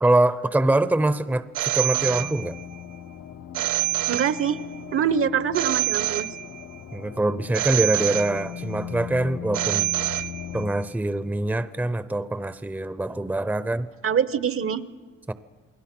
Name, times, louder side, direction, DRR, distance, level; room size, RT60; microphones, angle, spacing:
voice 1, 0.0-2.6 6.9-9.9 10.5-13.9 15.3-15.4, right 2 dB, 5° right, 14 dB, 0.7 m, -24 dB
Telephone, 1.6-2.8 3.5-4.8 5.5-6.8 7.5-8.8 9.5-10.8, right 17 dB, 75° right, 0.6 m, -27 dB
sound 1, 1.9-10.7, left 10 dB, 75° left, 1.1 m, -39 dB
voice 2, 4.1-4.6 4.9-6.3 14.0-14.9, right 8 dB, 45° right, 15 dB, 1.0 m, -24 dB
29.0 x 21.0 x 6.0 m, 1.4 s
cardioid pair, 90°, 30 cm